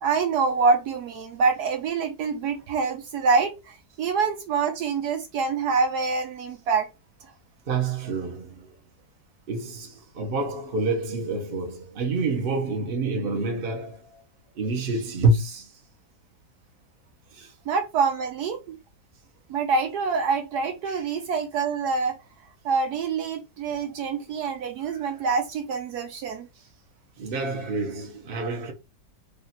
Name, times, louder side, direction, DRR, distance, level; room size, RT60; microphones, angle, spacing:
voice 1, 0.0-6.9 17.7-18.8 19.5-22.2 22.6-26.5, right 5 dB, 75° right, 1.1 m, -26 dB
voice 2, 7.7-8.7 9.5-14.2 14.5-15.7 17.3-17.5 20.9-21.0 24.9-25.1 27.2-28.7, right 3 dB, 40° right, 1.0 m, -27 dB
5.0 x 2.7 x 2.8 m
omnidirectional pair, 1.9 m